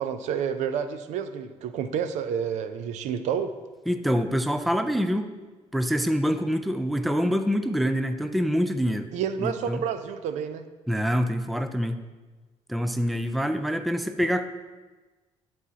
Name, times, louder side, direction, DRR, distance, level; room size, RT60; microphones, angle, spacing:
voice 1, 0.0-3.5 9.1-10.7, right 7 dB, 75° right, 10 dB, 0.5 m, -29 dB
voice 2, 3.9-5.3 5.7-9.1 9.4-9.8 10.9-12.0 12.7-14.4, equal, ahead, 9 dB, 0.3 m, -25 dB
10.5 x 4.2 x 2.8 m, 1.3 s
cardioid pair, 110°, 12 cm